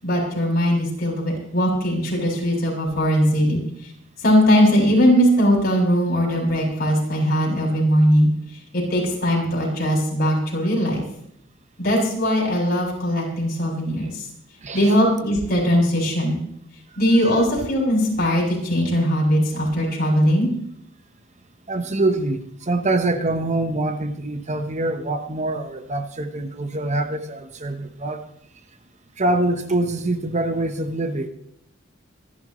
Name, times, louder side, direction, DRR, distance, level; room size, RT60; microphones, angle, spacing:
voice 1, 0.0-3.9 4.2-8.3 8.7-11.0 11.8-14.3 14.7-16.4 17.0-20.5, equal, 50° left, 6.7 m, -20 dB
voice 2, 21.7-28.3 29.2-31.3, right 2 dB, 35° right, 1.0 m, -24 dB
25.5 x 11.5 x 3.2 m
head